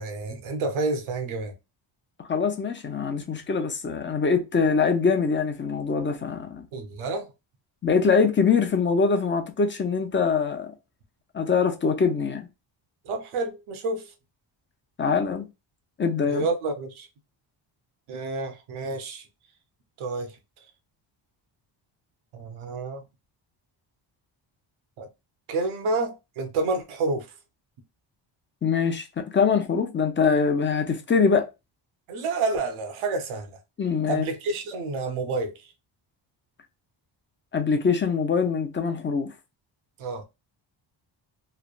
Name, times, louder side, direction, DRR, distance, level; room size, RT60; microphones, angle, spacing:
voice 1, 0.0-1.5 6.7-7.3 13.0-14.1 16.3-17.1 18.1-19.2 20.0-20.3 22.3-23.0 25.0-25.1 25.5-27.3 32.1-33.5 34.1-35.7 40.0-40.2, right 3 dB, 80° right, 0.9 m, -29 dB
voice 2, 2.3-6.6 7.8-10.7 11.3-12.5 15.0-15.4 16.0-16.5 28.6-31.5 33.8-34.3 37.5-39.3, left 5 dB, 25° left, 0.6 m, -23 dB
3.3 x 2.1 x 2.4 m
cardioid pair, 100°, 48 cm